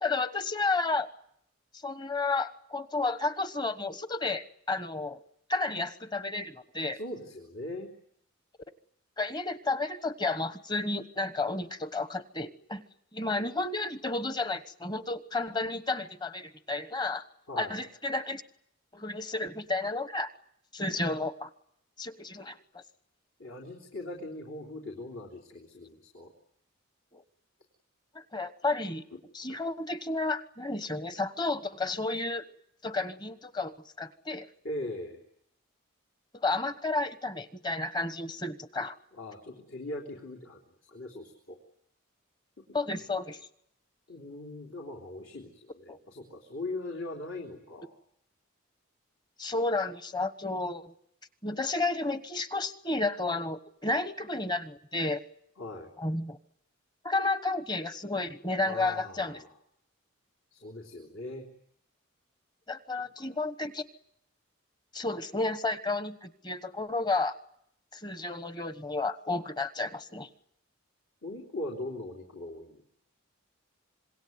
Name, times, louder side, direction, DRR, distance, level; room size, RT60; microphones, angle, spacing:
voice 1, 0.0-1.1 1.8-5.2 5.5-7.0 9.2-12.8 13.1-17.2 17.6-18.4 18.9-20.3 20.7-21.5 22.0-22.8 27.1-27.2 28.1-29.0 29.3-32.5 32.8-34.5 36.4-39.0 42.7-43.4 45.9-46.0 49.4-50.9 51.4-55.2 56.0-56.4 57.0-59.4 62.7-63.8 64.9-67.4 67.9-70.3, left 3 dB, 20° left, 12 dB, 1.1 m, -32 dB
voice 2, 6.9-7.9 17.5-17.8 23.4-26.3 34.6-35.2 39.1-40.6 40.9-41.6 44.1-48.0 55.6-55.9 58.6-59.5 60.5-61.4 71.2-72.8, left 2 dB, 65° left, 0 dB, 3.6 m, -40 dB
26.5 x 21.5 x 9.4 m, 0.73 s
head